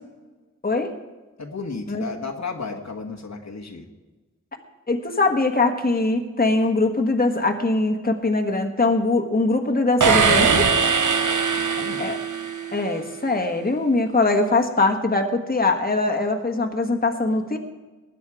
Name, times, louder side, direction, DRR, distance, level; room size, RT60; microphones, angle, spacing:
voice 1, 1.4-3.9 11.5-12.0, left 4 dB, 65° left, 3 dB, 1.4 m, -33 dB
voice 2, 4.9-10.7 12.0-12.2 12.7-17.6, left 2 dB, 30° left, 4 dB, 1.4 m, -22 dB
sound 1, 10.0-12.8, right 5 dB, 80° right, 1.0 m, -20 dB
20.0 x 9.3 x 4.8 m, 1.2 s
wide cardioid pair, 85°, 30 cm